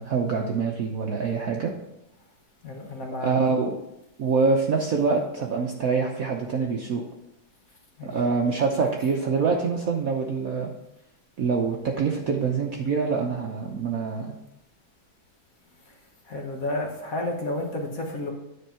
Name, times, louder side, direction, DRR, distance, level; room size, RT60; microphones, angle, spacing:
voice 1, 0.0-1.7 3.2-3.8 4.2-7.0 8.0-10.7 11.4-14.3, right 5 dB, 60° right, 0 dB, 1.0 m, -25 dB
voice 2, 2.6-3.3 8.0-8.2 15.9-16.0 16.2-18.3, left 2 dB, 45° left, 1 dB, 1.5 m, -31 dB
9.6 x 4.5 x 5.7 m, 0.86 s
omnidirectional pair, 2.2 m